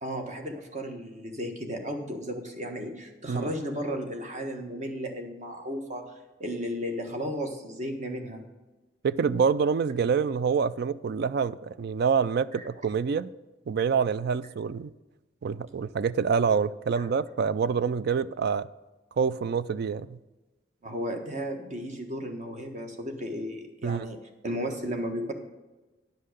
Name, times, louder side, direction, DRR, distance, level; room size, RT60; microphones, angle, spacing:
voice 1, 0.0-6.1 6.4-8.4 12.5-12.7 17.0-17.3 20.8-25.3, equal, 40° right, 1.3 m, -34 dB
voice 2, 9.0-13.3 13.7-14.9 15.4-18.7 19.2-20.2 23.8-24.1, right 6 dB, 55° right, 0.3 m, -26 dB
10.5 x 5.6 x 6.5 m
head